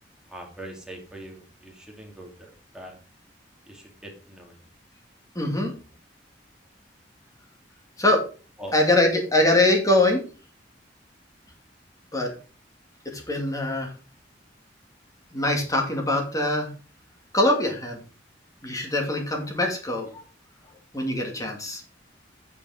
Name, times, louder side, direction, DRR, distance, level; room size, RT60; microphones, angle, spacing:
voice 1, 0.3-3.0 3.7-4.6 8.6-8.7, right 1 dB, 5° right, 0 dB, 2.5 m, -42 dB
voice 2, 5.3-5.7 8.0-8.2 8.7-10.2 12.1-12.3 13.1-13.9 15.3-16.7 17.3-18.0 18.6-20.1 20.9-21.8, left 1 dB, 20° left, 2 dB, 2.6 m, -23 dB
8.9 x 6.8 x 5.1 m, 0.36 s
head